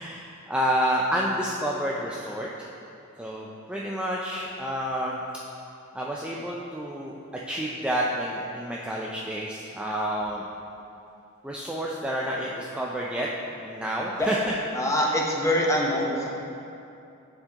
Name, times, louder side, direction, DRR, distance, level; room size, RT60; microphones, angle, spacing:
voice 1, 0.0-2.7 3.2-5.2 5.9-7.2 7.5-10.4 11.4-13.3 13.6-14.4, equal, 5° right, -4 dB, 0.3 m, -29 dB
voice 2, 14.7-16.3, left 1 dB, 15° left, -2 dB, 0.8 m, -24 dB
11.0 x 4.5 x 2.9 m, 2.7 s
head